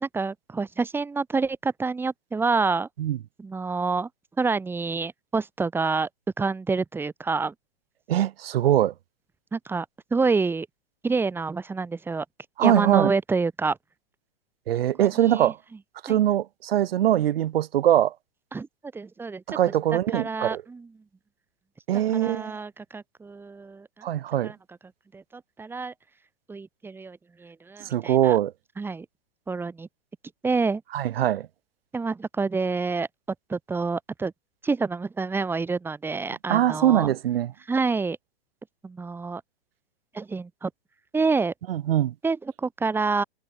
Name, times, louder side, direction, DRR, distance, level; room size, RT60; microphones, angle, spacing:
voice 1, 0.0-2.9 3.4-4.1 4.4-6.1 6.4-7.5 9.5-10.7 11.0-12.3 12.6-13.8 15.0-15.5 16.1-16.2 18.5-19.6 19.9-21.0 21.9-24.1 24.4-24.8 25.1-25.9 26.5-28.4 28.8-29.1 29.5-29.9 30.4-30.8 31.9-33.1 33.5-34.3 34.6-37.1 37.7-38.2 38.8-39.4 40.1-40.7 41.1-41.5 42.2-43.2, right 4 dB, 5° right, 2.5 m, -28 dB
voice 2, 8.1-8.9 12.6-13.1 14.7-15.6 16.0-18.1 19.5-20.6 21.9-22.5 24.0-24.5 27.8-28.5 30.9-31.5 36.5-37.5 41.7-42.1, right 12 dB, 65° right, 5.4 m, -22 dB
supercardioid pair, 160°, 31 cm